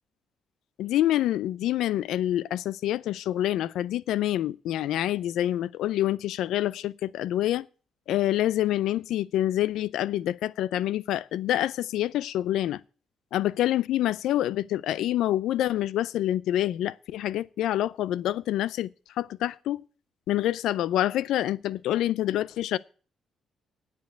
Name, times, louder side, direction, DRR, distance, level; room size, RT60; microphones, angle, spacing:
voice 1, 0.8-7.7 8.1-12.8 13.3-18.9 19.2-19.8 20.3-22.8, left 13 dB, 85° left, 0.5 m, -27 dB
9.6 x 6.9 x 9.0 m
cardioid pair, 90°, 0 cm